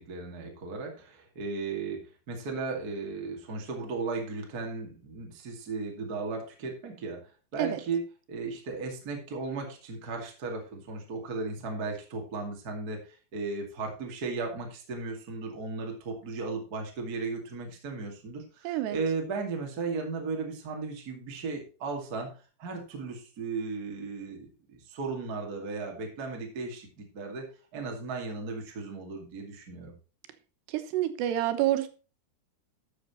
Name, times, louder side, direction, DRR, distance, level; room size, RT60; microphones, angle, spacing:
voice 1, 0.0-22.3 22.6-27.4 27.7-29.9, right 4 dB, 30° right, 2 dB, 2.2 m, -36 dB
voice 2, 18.6-19.0 30.7-31.9, right 13 dB, 90° right, 10 dB, 3.1 m, -28 dB
13.0 x 6.5 x 4.4 m, 0.33 s
omnidirectional pair, 4.8 m